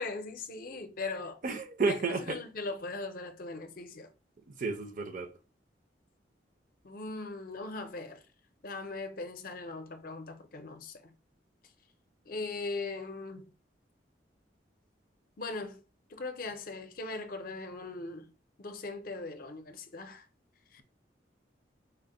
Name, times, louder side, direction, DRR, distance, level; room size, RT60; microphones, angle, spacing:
voice 1, 0.0-1.4 1.9-2.0 2.3-4.1 6.8-8.2 8.6-11.1 12.3-13.5 15.4-15.8 16.1-18.3 18.6-20.3 20.7-20.8, left 3 dB, 50° left, 0.5 m, -39 dB
voice 2, 1.4-2.4 4.5-5.3, right 4 dB, 45° right, 0.6 m, -32 dB
4.4 x 2.1 x 3.8 m
head